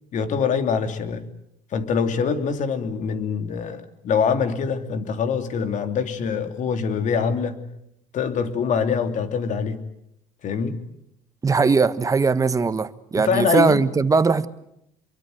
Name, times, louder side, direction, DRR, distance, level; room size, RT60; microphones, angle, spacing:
voice 1, 0.1-1.3 1.7-7.6 8.1-9.8 10.4-10.8 13.2-13.9, left 6 dB, 55° left, 3.1 m, -24 dB
voice 2, 11.4-14.5, right 4 dB, 20° right, 1.4 m, -20 dB
27.0 x 23.5 x 8.0 m
cardioid pair, 110°, 15 cm